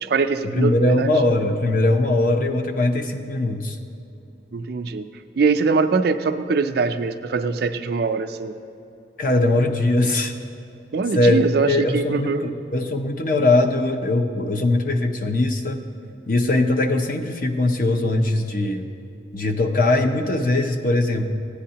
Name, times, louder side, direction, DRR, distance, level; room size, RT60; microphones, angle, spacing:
voice 1, 0.0-1.1 4.5-5.1 5.4-8.6 10.9-12.4, right 4 dB, 55° right, 9 dB, 0.4 m, -22 dB
voice 2, 0.6-3.8 9.2-10.3 11.1-15.8 16.3-18.9 19.3-21.2, left 2 dB, 45° left, 5 dB, 0.6 m, -21 dB
15.0 x 9.7 x 2.8 m, 2.8 s
head